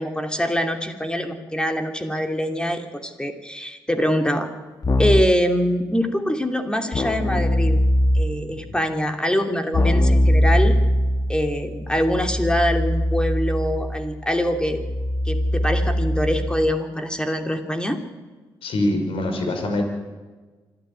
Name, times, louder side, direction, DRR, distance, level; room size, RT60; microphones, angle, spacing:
voice 1, 0.0-4.5 5.0-7.8 8.1-10.8 11.3-14.8 15.2-18.0, equal, 10° left, 5 dB, 2.9 m, -24 dB
Keyboard (musical), 4.8-5.5 6.9-8.5 9.7-16.8, left 1 dB, 40° left, 1.4 m, -21 dB
voice 2, 18.6-19.8, left 1 dB, 70° left, 5 dB, 5.3 m, -23 dB
26.0 x 11.5 x 9.8 m, 1.3 s
hypercardioid pair, 50°, 10 cm